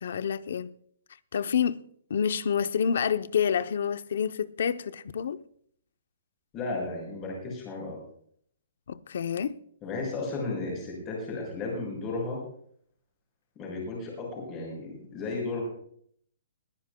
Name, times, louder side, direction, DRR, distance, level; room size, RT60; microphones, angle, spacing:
voice 1, 0.0-0.7 1.3-1.8 2.1-5.4 8.9-9.6, left 7 dB, 60° left, 0.7 m, -28 dB
voice 2, 6.5-8.0 9.8-12.4 13.6-15.7, left 3 dB, 20° left, 6.1 m, -34 dB
21.0 x 14.5 x 2.3 m
hypercardioid pair, 175°, 0 cm